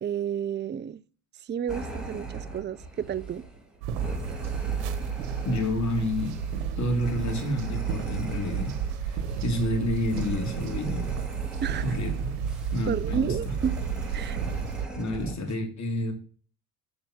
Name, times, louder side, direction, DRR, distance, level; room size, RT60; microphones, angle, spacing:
voice 1, 0.0-1.0 1.4-3.4 11.6-12.0 12.9-13.8 14.1-14.4, right 8 dB, 25° right, 0.6 m, -31 dB
sound 1, 1.7-15.5, right 3 dB, ahead, 3.1 m, -39 dB
sound 2, 3.8-14.9, right 7 dB, 85° right, 1.1 m, -32 dB
voice 2, 5.4-6.4 6.8-8.7 9.0-11.1 11.8-12.3 12.7-13.5 15.0-16.1, left 1 dB, 40° left, 3.2 m, -29 dB
7.3 x 5.0 x 6.2 m
supercardioid pair, 75°, 45 cm